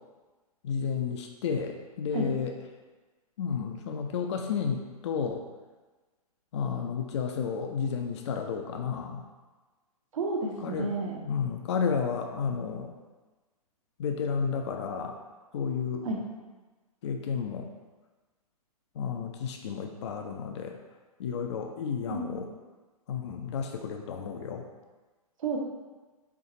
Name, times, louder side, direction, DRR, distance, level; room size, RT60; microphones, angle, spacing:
voice 1, 0.6-2.5 3.4-5.4 6.5-9.2 10.6-11.0 11.3-12.9 14.0-15.2 15.5-16.1 17.0-17.7 19.0-20.8 21.2-22.5 23.1-24.7, left 6 dB, 45° left, 4 dB, 0.4 m, -32 dB
voice 2, 10.1-11.2 16.0-16.2 22.1-22.4 25.4-25.6, right 3 dB, 60° right, 0 dB, 0.7 m, -31 dB
4.6 x 2.3 x 3.7 m, 1.3 s
figure-of-eight pair, 115°, 20 cm